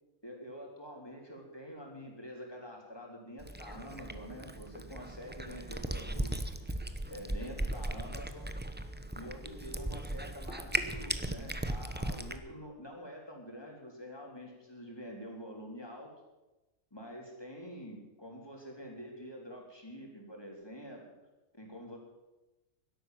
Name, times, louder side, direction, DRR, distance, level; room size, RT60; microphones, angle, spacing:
voice 1, 0.2-6.5 7.1-8.5 9.2-16.1 16.9-21.0 21.6-22.0, equal, 15° left, -1 dB, 3.7 m, -46 dB
Cat, 3.4-12.4, right 1 dB, 10° right, 0.6 m, -37 dB
12.5 x 11.5 x 9.2 m, 1.1 s
omnidirectional pair, 1.5 m